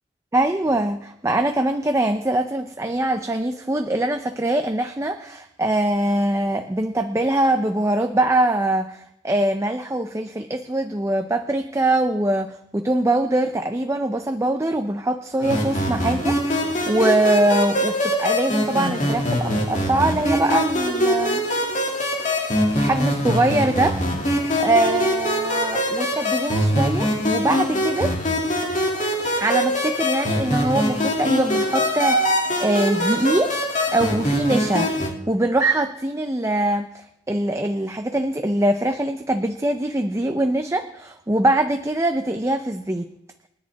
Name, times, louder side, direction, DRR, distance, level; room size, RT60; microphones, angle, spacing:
voice 1, 0.3-21.4 22.7-28.1 29.4-33.5 33.9-34.9 35.3-43.1, right 1 dB, 15° right, 6 dB, 0.6 m, -23 dB
sound 1, 15.4-35.1, equal, 45° left, 2.6 m, -23 dB
29.0 x 10.5 x 3.5 m, 0.84 s
head